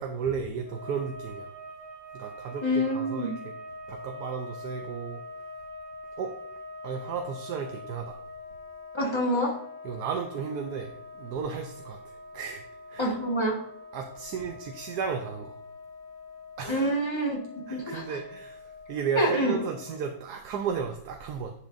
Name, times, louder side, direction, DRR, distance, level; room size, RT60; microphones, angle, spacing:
voice 1, 0.0-1.5 2.1-3.5 3.9-5.2 6.2-6.3 6.8-8.2 9.8-12.0 12.3-12.6 12.9-13.1 13.9-15.6 16.6-17.0 17.7-18.6 18.9-21.5, right 6 dB, 80° right, 5 dB, 1.2 m, -34 dB
sound 1, 0.6-20.2, left 2 dB, 50° left, 2.4 m, -44 dB
voice 2, 2.6-3.3 8.9-9.5 13.0-13.6 16.7-17.4 17.7-18.0 19.1-19.5, equal, 15° left, -2 dB, 1.6 m, -26 dB
10.5 x 6.4 x 2.6 m, 0.72 s
omnidirectional pair, 1.7 m